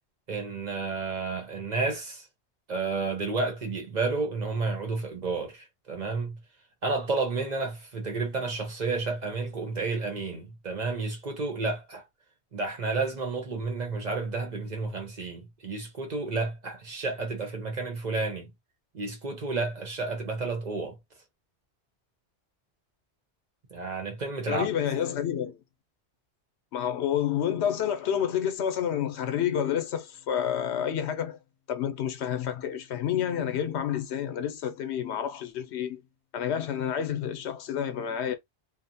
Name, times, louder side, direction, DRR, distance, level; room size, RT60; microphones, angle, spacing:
voice 1, 0.3-2.3 2.7-6.4 6.8-12.0 12.5-18.5 18.9-21.0 23.7-24.7, right 3 dB, 45° right, 0.9 m, -31 dB
voice 2, 24.5-25.6 26.7-31.4 31.7-36.0 36.3-38.4, left 9 dB, 80° left, 0.9 m, -29 dB
2.7 x 2.1 x 2.7 m
omnidirectional pair, 1.1 m